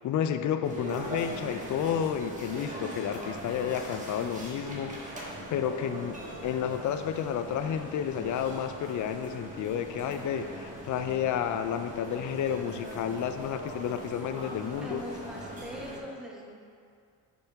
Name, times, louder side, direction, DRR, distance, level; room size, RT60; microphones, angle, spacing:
voice 1, 0.0-15.0, left 8 dB, 50° left, 9 dB, 0.4 m, -31 dB
sound 1, 0.6-16.0, right 1 dB, 20° right, 1.3 m, -41 dB
voice 2, 14.6-16.6, equal, ahead, -2 dB, 1.1 m, -42 dB
5.5 x 4.3 x 4.6 m, 2.3 s
cardioid pair, 75°, 41 cm